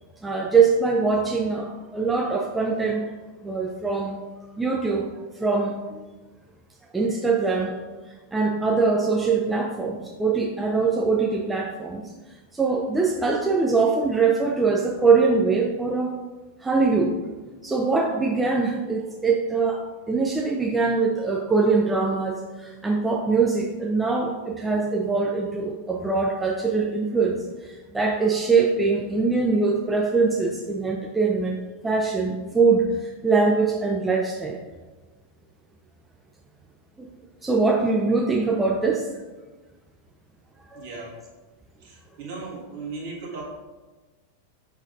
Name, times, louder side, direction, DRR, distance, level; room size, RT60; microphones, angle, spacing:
voice 1, 0.2-3.1 3.4-4.2 4.6-5.1 5.4-6.0 6.9-7.7 8.3-12.0 12.5-16.1 16.6-17.3 17.6-34.6 37.0-37.1 37.4-39.0 40.7-40.9, right 4 dB, 10° right, 0 dB, 0.4 m, -23 dB
voice 2, 40.7-41.1 41.8-43.4, right 3 dB, 50° right, -4 dB, 1.5 m, -37 dB
5.1 x 3.9 x 2.6 m, 1.2 s
figure-of-eight pair, 90°, 0 cm